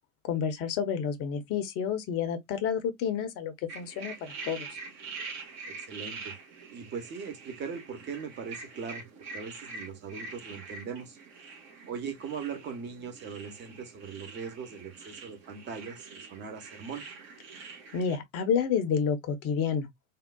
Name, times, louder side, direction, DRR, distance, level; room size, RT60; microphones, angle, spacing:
voice 1, 0.2-4.7 17.9-19.9, left 7 dB, 35° left, 0.8 m, -30 dB
sound 1, 3.7-18.2, right 4 dB, 45° right, 1.4 m, -45 dB
voice 2, 5.7-6.3 6.7-9.1 9.3-11.2 11.9-17.0, right 6 dB, 25° right, 0.9 m, -40 dB
3.6 x 2.3 x 2.2 m
figure-of-eight pair, 80°, 43 cm